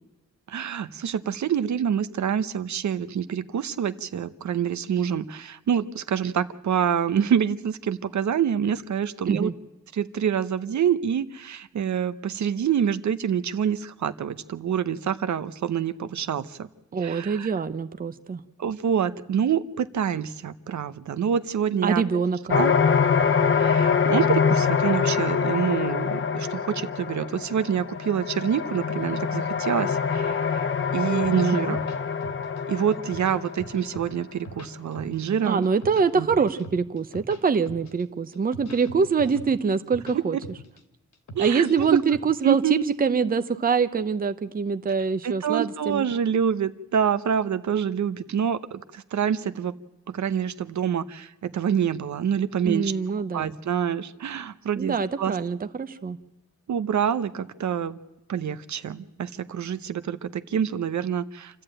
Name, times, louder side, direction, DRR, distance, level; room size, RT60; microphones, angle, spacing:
voice 1, 0.5-9.5 9.9-16.7 17.0-17.5 18.6-22.0 22.5-22.8 23.5-30.7 30.9-31.8 32.7-35.6 36.1-36.3 40.1-40.2 41.3-42.0 42.4-42.8 45.2-49.7 50.1-52.9 53.3-55.4 56.7-58.0 58.3-61.6, right 8 dB, 65° right, 12 dB, 0.8 m, -26 dB
voice 2, 16.9-18.4 21.8-22.6 31.5-31.8 35.4-40.4 41.4-46.1 52.6-53.6 54.8-56.2, right 5 dB, 30° right, 10 dB, 0.7 m, -24 dB
sound 1, 22.5-33.9, left 6 dB, 40° left, 0.8 m, -24 dB
sound 2, 31.2-32.6 32.9-34.1 34.3-35.3 35.6-37.4 37.7-38.0 38.3-40.2 40.4-40.8 41.1-42.2, right 1 dB, 60° left, 2.5 m, -41 dB
27.5 x 13.5 x 9.0 m, 0.92 s
wide cardioid pair, 155°, 31 cm